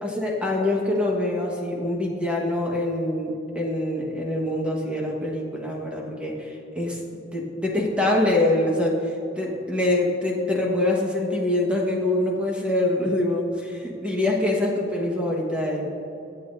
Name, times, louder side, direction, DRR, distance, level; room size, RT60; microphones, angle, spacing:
voice 1, 0.0-7.0 7.3-16.0, left 1 dB, 5° right, -2 dB, 1.5 m, -25 dB
24.5 x 8.7 x 2.8 m, 2.8 s
head